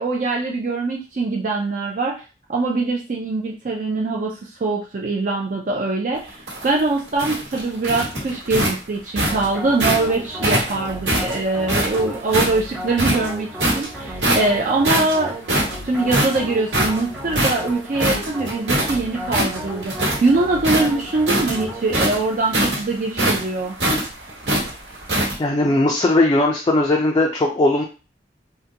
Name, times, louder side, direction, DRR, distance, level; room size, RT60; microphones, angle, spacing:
voice 1, 0.0-2.1 2.5-15.3 15.8-23.8, right 3 dB, 45° right, -1 dB, 0.4 m, -23 dB
sound 1, 6.3-10.1 10.4-12.6 12.9-13.9 14.2-14.6 14.8-18.9 19.2-20.3 20.6-25.3, right 1 dB, 85° right, 1.3 m, -22 dB
sound 2, 9.3-22.5, equal, 5° right, 0.7 m, -34 dB
voice 2, 25.4-27.8, left 2 dB, 25° left, 0 dB, 0.3 m, -18 dB
3.7 x 2.2 x 2.7 m, 0.33 s
head